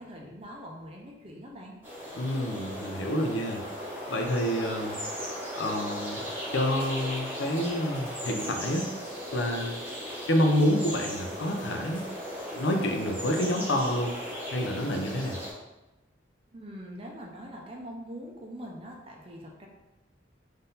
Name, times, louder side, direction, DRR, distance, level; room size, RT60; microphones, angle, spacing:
voice 1, 0.0-1.8 16.5-19.7, equal, 30° right, -1 dB, 0.5 m, -43 dB
sound 1, 1.8-15.5, equal, 10° right, 0.9 m, -37 dB
voice 2, 2.1-3.6 4.1-5.0 5.6-6.2 6.5-8.9 9.3-9.8 10.3-12.0 12.5-14.1 14.5-15.4, left 1 dB, 75° left, 3 dB, 0.6 m, -28 dB
3.8 x 2.7 x 3.9 m, 1.1 s
head